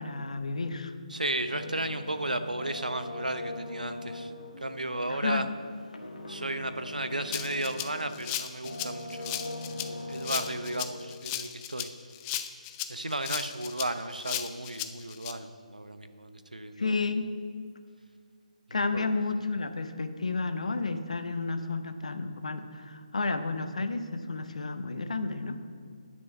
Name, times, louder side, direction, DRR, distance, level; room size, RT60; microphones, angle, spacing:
voice 1, 0.0-0.9 5.1-5.4 16.8-17.4 18.7-25.6, left 3 dB, 60° left, 8 dB, 0.9 m, -31 dB
voice 2, 1.1-4.3 4.6-5.5 6.3-9.4 9.8-11.9 12.9-17.0 18.9-19.1, right 1 dB, 80° right, 9 dB, 0.8 m, -34 dB
sound 1, 1.5-8.2 8.6-10.8, left 1 dB, 75° left, 1.6 m, -41 dB
Rattle (instrument), 7.3-15.3, left 12 dB, 15° left, 0.4 m, -36 dB
9.9 x 7.5 x 5.8 m, 2.2 s
figure-of-eight pair, 145°, 4 cm